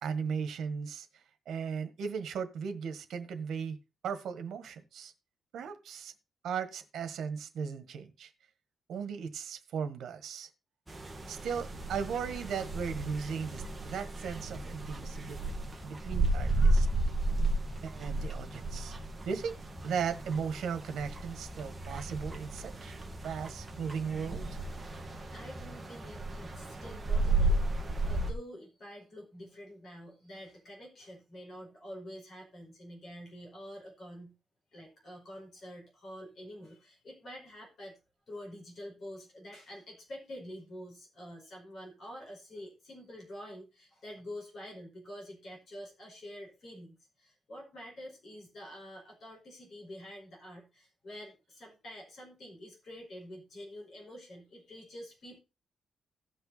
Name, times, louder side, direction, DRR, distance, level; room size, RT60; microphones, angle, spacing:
voice 1, 0.0-3.8 4.0-5.1 5.5-6.1 6.4-8.3 8.9-10.5 11.3-15.4 15.8-16.9 17.8-18.9 19.2-19.5 19.8-24.6, right 6 dB, 70° right, 10 dB, 1.5 m, -37 dB
sound 1, 10.9-28.3, right 2 dB, 10° right, 1.7 m, -33 dB
voice 2, 25.3-34.3 34.7-38.0 38.3-55.4, equal, 45° left, -2 dB, 4.8 m, -47 dB
16.0 x 5.8 x 4.1 m, 0.30 s
wide cardioid pair, 160°, 0 cm